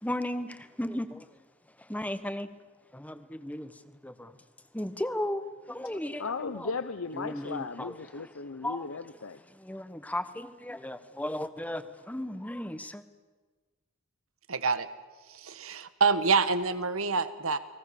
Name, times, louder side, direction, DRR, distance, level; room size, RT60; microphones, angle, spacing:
voice 1, 0.0-1.4 1.8-2.5 2.9-4.4 4.7-6.3 6.5-6.7 7.1-8.3 8.6-8.9 9.5-13.0, left 1 dB, 5° left, 11 dB, 1.2 m, -35 dB
voice 2, 6.2-9.4, left 4 dB, 80° left, 11 dB, 0.8 m, -36 dB
voice 3, 14.5-14.9 15.3-17.6, right 4 dB, 80° right, 12 dB, 1.5 m, -27 dB
30.0 x 21.5 x 7.0 m, 1.3 s
head